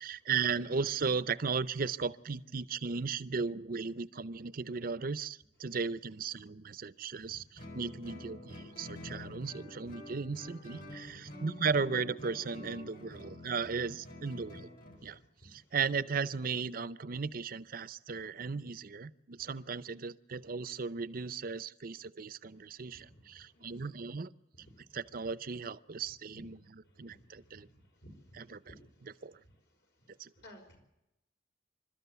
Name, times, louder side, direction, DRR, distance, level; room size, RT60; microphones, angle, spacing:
voice 1, 0.0-14.7 15.0-24.3 24.9-27.7 28.3-28.7 29.0-29.3 30.2-30.3, right 5 dB, 50° right, 16 dB, 0.6 m, -36 dB
Guitar, 7.6-15.0, left 1 dB, 50° left, 4.3 m, -48 dB
voice 2, 15.0-15.6 22.8-23.8 24.5-25.0 26.3-26.4 26.9-27.7 28.0-28.9 30.4-30.8, equal, 70° left, 3 dB, 5.4 m, -57 dB
27.0 x 13.0 x 8.2 m, 0.89 s
head